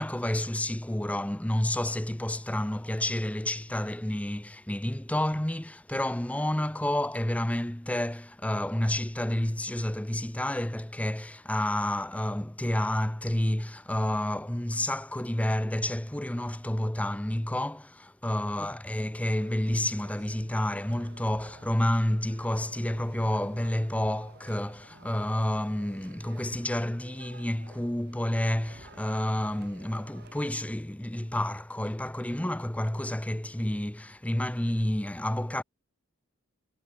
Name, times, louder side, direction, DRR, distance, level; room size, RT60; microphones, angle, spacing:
voice 1, 0.0-35.6, left 1 dB, 5° left, 0.6 m, -30 dB
sound 1, 19.2-30.5, right 2 dB, 50° right, 7.6 m, -53 dB
head